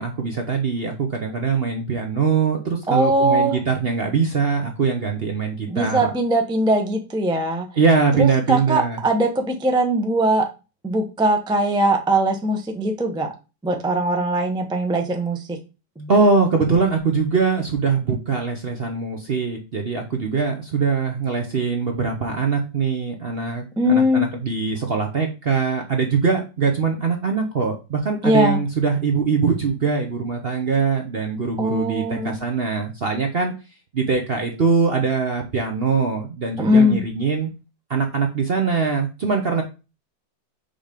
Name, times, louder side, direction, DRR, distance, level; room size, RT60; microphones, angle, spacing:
voice 1, 0.0-6.1 7.8-9.0 16.1-33.5 33.9-37.5 37.9-39.6, right 5 dB, 50° right, 3 dB, 0.7 m, -22 dB
voice 2, 2.9-3.6 5.7-7.7 8.2-10.5 10.8-13.3 13.6-15.6 16.0-16.1 23.8-24.3 28.2-28.6 31.6-32.4 36.6-37.0, equal, 5° right, 3 dB, 0.4 m, -20 dB
5.6 x 3.4 x 5.1 m, 0.30 s
omnidirectional pair, 1.9 m